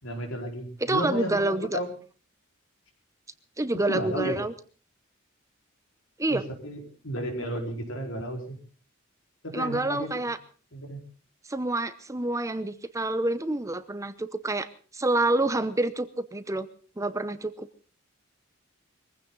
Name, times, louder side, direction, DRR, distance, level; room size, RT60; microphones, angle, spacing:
voice 1, 0.0-1.9 3.7-4.4 6.3-8.6 9.4-10.3 10.7-11.0, equal, 75° left, 2 dB, 4.9 m, -33 dB
voice 2, 0.8-1.8 3.6-4.5 6.2-6.4 9.5-10.4 11.5-14.7 14.9-16.7 17.0-17.7, right 2 dB, 15° right, 12 dB, 0.8 m, -27 dB
22.5 x 15.5 x 4.0 m, 0.40 s
head